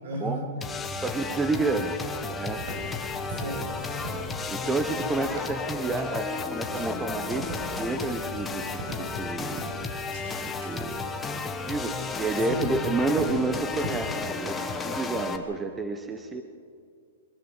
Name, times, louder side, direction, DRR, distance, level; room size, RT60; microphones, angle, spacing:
voice 1, 0.0-0.5 3.3-3.9 12.5-12.8, right 1 dB, 65° right, 3 dB, 6.3 m, -34 dB
sound 1, 0.6-15.4, left 4 dB, 10° left, 1.4 m, -33 dB
voice 2, 1.0-2.0 2.3-2.8 4.5-9.6 10.4-11.0 11.3-14.6 14.8-16.4, right 3 dB, 10° right, 6 dB, 1.1 m, -30 dB
sound 2, 2.1-14.0, right 1 dB, 50° right, 7.8 m, -41 dB
25.0 x 17.5 x 7.3 m, 2.2 s
hypercardioid pair, 155°, 0 cm